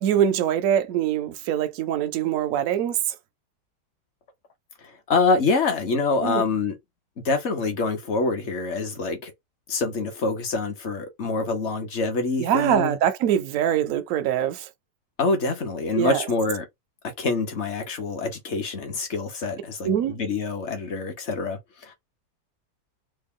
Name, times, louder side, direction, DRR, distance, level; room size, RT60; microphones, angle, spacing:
voice 1, 0.0-3.2 6.2-6.4 12.4-14.7 15.9-16.2 19.8-20.2, right 10 dB, 70° right, 0.8 m, -23 dB
voice 2, 4.8-6.8 7.2-9.3 9.7-13.0 15.2-16.6 17.0-21.9, left 3 dB, 50° left, 1.0 m, -26 dB
3.3 x 2.2 x 3.6 m
omnidirectional pair, 1.9 m